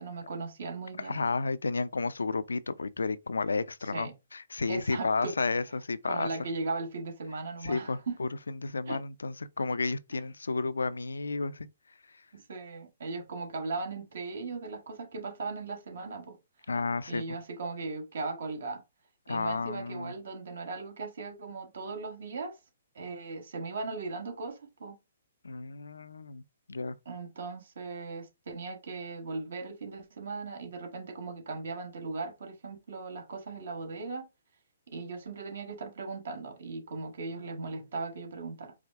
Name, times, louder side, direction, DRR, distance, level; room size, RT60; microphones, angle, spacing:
voice 1, 0.0-1.2 3.8-4.1 4.7-5.3 6.1-8.2 8.9-9.0 10.1-10.2 12.3-16.4 17.1-18.8 19.3-22.6 22.9-25.0 27.0-34.3 34.9-38.7, right 3 dB, 70° right, 1.3 m, -38 dB
voice 2, 1.0-6.3 7.6-11.7 16.7-17.4 19.3-20.1 25.4-26.4 26.7-27.0, left 3 dB, 90° left, 0.4 m, -32 dB
4.8 x 2.1 x 3.5 m
hypercardioid pair, 135°, 0 cm